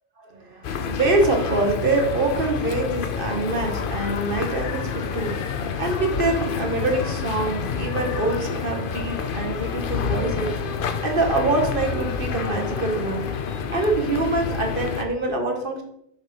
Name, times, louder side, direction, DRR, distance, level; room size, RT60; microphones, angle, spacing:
voice 1, 0.2-5.4 5.8-10.6 11.0-13.3 13.7-15.8, right 2 dB, 55° right, 2 dB, 1.4 m, -25 dB
sound 1, 0.6-15.0, left 6 dB, 55° left, 0.8 m, -28 dB
6.5 x 4.2 x 5.0 m, 0.74 s
omnidirectional pair, 1.1 m